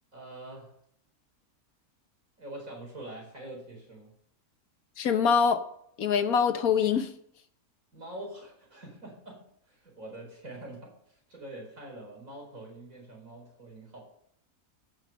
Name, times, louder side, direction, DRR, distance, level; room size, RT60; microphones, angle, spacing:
voice 1, 0.1-0.7 2.4-4.1 7.9-11.0 11.3-14.0, right 1 dB, 65° right, -1 dB, 5.2 m, -44 dB
voice 2, 5.0-5.7 6.0-7.1, left 6 dB, 80° left, 9 dB, 1.5 m, -24 dB
15.0 x 6.2 x 6.8 m, 0.69 s
omnidirectional pair, 1.5 m